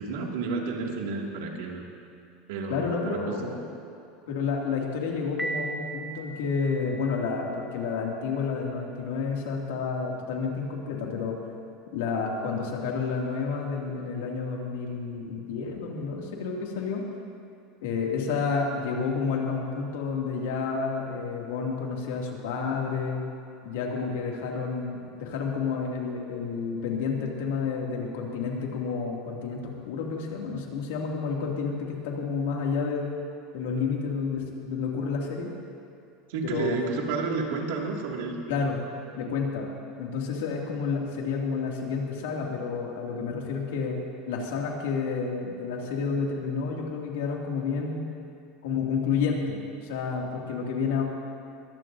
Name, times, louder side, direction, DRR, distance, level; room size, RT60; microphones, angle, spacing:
voice 1, 0.0-1.9 2.5-3.5 36.3-38.4, right 4 dB, 80° right, 0 dB, 2.2 m, -31 dB
voice 2, 2.7-3.7 4.3-11.4 11.9-17.0 17.8-23.2 23.6-33.1 33.5-35.5 36.4-36.8 38.5-38.8 39.1-39.7 40.0-44.0 44.3-48.0 48.6-51.0, left 5 dB, 85° left, -1 dB, 2.4 m, -30 dB
Piano, 5.4-7.3, right 3 dB, 5° right, 0.8 m, -36 dB
21.5 x 15.0 x 2.7 m, 2.6 s
supercardioid pair, 140°, 0 cm